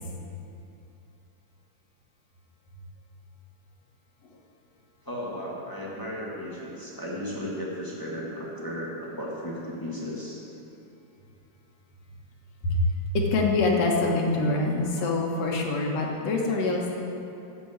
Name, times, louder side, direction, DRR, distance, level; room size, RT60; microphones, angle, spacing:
voice 1, 5.0-10.4, equal, 10° left, -5 dB, 1.2 m, -35 dB
voice 2, 12.6-16.9, left 2 dB, 60° left, 0 dB, 2.3 m, -25 dB
10.5 x 8.0 x 8.0 m, 2.8 s
omnidirectional pair, 3.5 m